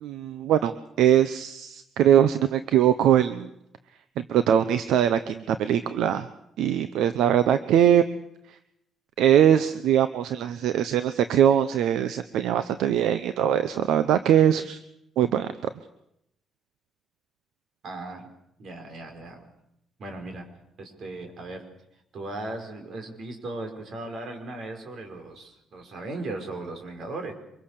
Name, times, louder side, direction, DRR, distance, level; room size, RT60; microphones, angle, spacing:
voice 1, 0.0-3.5 4.2-6.3 6.6-8.0 9.2-14.8 15.2-15.5, right 10 dB, 85° right, 12 dB, 0.9 m, -21 dB
voice 2, 17.8-18.3 18.6-19.5 20.0-20.5 20.8-21.6 22.1-27.3, right 2 dB, 60° right, 5 dB, 5.4 m, -37 dB
25.0 x 22.5 x 6.7 m, 0.80 s
cardioid pair, 90°, 0 cm